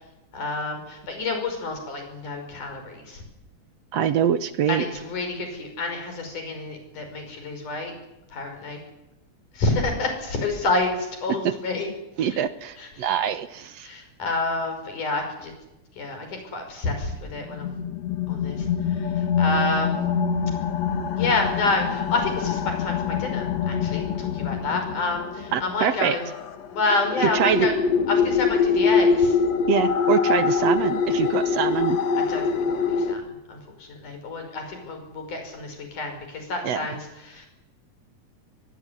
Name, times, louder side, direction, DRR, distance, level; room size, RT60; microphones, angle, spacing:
voice 1, 0.3-3.2 4.7-7.9 8.3-8.8 9.6-11.9 13.8-15.5 16.0-16.3 16.5-17.7 18.3-18.6 19.4-20.0 21.2-26.2 26.7-27.8 28.1-29.3 32.3-32.4 32.7-32.8 33.1-33.6 33.9-37.0 37.3-37.5, left 3 dB, 90° left, 5 dB, 7.2 m, -28 dB
voice 2, 3.9-4.9 11.3-11.5 12.2-13.9 25.5-26.2 27.2-27.7 29.7-32.0 36.6-36.9, right 8 dB, 65° right, 13 dB, 2.0 m, -24 dB
sound 1, 17.4-33.2, left 5 dB, 65° left, 2.6 m, -24 dB
23.0 x 21.5 x 9.7 m, 0.94 s
omnidirectional pair, 3.5 m